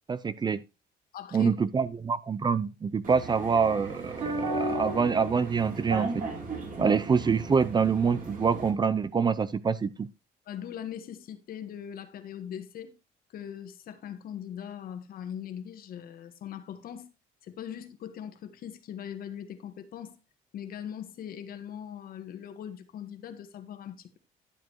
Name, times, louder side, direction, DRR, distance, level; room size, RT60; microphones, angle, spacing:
voice 1, 0.1-0.6 1.3-6.2 6.8-10.1, right 5 dB, 25° right, 0.5 m, -26 dB
voice 2, 1.1-1.5 6.8-7.0 10.5-12.9 13.3-17.1 17.4-20.2 20.5-24.2, left 9 dB, 60° left, 1.5 m, -40 dB
sound 1, 3.0-8.7, right 2 dB, 55° right, 3.3 m, -35 dB
11.5 x 7.6 x 3.1 m
cardioid pair, 110°, 17 cm